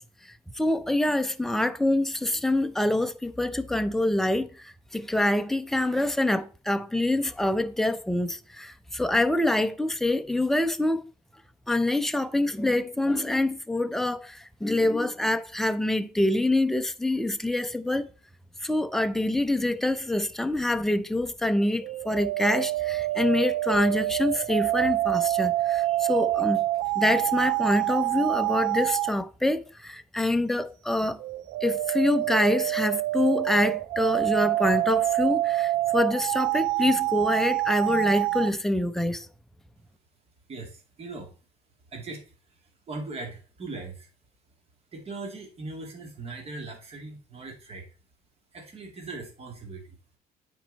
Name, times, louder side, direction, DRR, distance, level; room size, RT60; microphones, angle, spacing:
voice 1, 0.0-11.0 11.7-18.1 18.6-26.6 26.9-31.2 31.6-39.3, left 1 dB, ahead, 0.6 m, -26 dB
sound 1, 21.8-29.2 31.2-38.5, right 17 dB, 90° right, 0.4 m, -26 dB
voice 2, 40.5-41.4 41.9-44.1 44.9-47.9 48.5-50.0, right 3 dB, 35° right, 2.4 m, -40 dB
9.0 x 4.5 x 4.1 m
cardioid pair, 110°, 17 cm